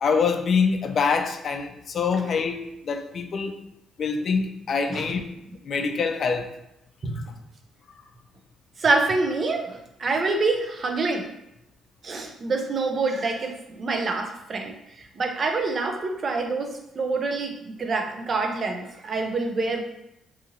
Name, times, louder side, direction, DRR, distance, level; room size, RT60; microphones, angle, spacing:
voice 1, 0.0-3.5 4.0-5.3 5.6-6.5, left 5 dB, 55° left, 7 dB, 0.3 m, -25 dB
voice 2, 8.8-11.3 12.0-19.8, right 3 dB, 45° right, 3 dB, 0.5 m, -26 dB
2.7 x 2.5 x 2.7 m, 0.85 s
cardioid pair, 90°, 0 cm